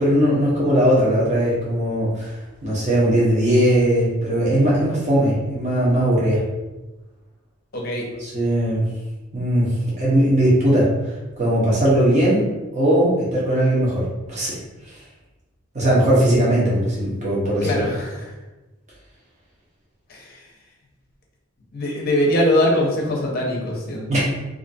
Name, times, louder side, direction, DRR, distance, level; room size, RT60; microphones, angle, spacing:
voice 1, 0.0-2.3 2.6-6.4 8.2-8.9 9.3-10.9 11.4-14.6 15.7-17.8 24.1-24.2, right 1 dB, 35° right, -7 dB, 0.8 m, -19 dB
voice 2, 7.7-8.1 17.6-18.3 20.1-20.4 21.7-24.2, left 1 dB, 45° left, -2 dB, 0.6 m, -22 dB
2.5 x 2.4 x 2.6 m, 1.1 s
head